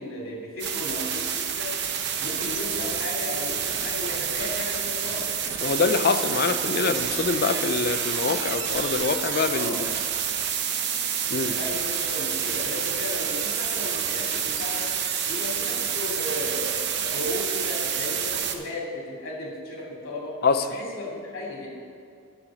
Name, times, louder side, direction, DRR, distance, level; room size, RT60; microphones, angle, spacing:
voice 1, 0.0-1.8 2.2-5.4 9.5-9.8 11.3-14.9 15.3-20.4 20.7-21.7, left 2 dB, 65° left, -3 dB, 2.5 m, -35 dB
sound 1, 0.6-18.5, right 8 dB, 55° right, 0.7 m, -28 dB
voice 2, 5.6-9.9 11.3-11.5 20.4-20.6, left 4 dB, 45° left, 9 dB, 0.5 m, -25 dB
10.0 x 5.7 x 7.2 m, 2.4 s
head